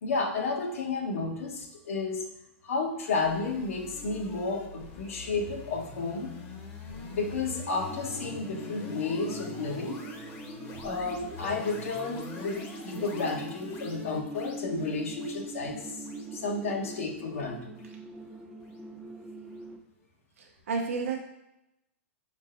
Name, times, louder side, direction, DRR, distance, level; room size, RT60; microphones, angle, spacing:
voice 1, 0.0-2.3 2.6-6.4 7.1-10.0 10.8-17.7, left 3 dB, 85° left, 1 dB, 1.1 m, -32 dB
sound 1, 3.2-18.4, left 3 dB, 35° left, 0.8 m, -44 dB
sound 2, 7.9-19.8, right 1 dB, 10° right, 0.4 m, -42 dB
voice 2, 20.4-21.2, right 4 dB, 85° right, 1 dB, 0.6 m, -31 dB
5.5 x 3.8 x 2.5 m, 0.86 s
hypercardioid pair, 140°, 7 cm